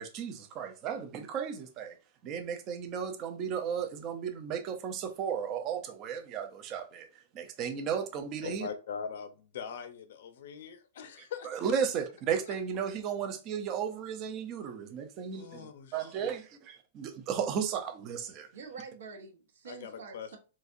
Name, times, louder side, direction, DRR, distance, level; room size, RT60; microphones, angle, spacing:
voice 1, 0.0-2.0 2.2-7.1 7.3-8.7 11.4-18.5, right 7 dB, 25° right, 0.4 m, -34 dB
voice 2, 8.4-11.8 12.5-12.6 15.3-16.3 19.7-20.3, left 7 dB, 55° left, 0.6 m, -42 dB
voice 3, 18.5-20.4, right 5 dB, 70° right, 0.9 m, -46 dB
4.0 x 2.4 x 2.5 m
supercardioid pair, 175°, 0 cm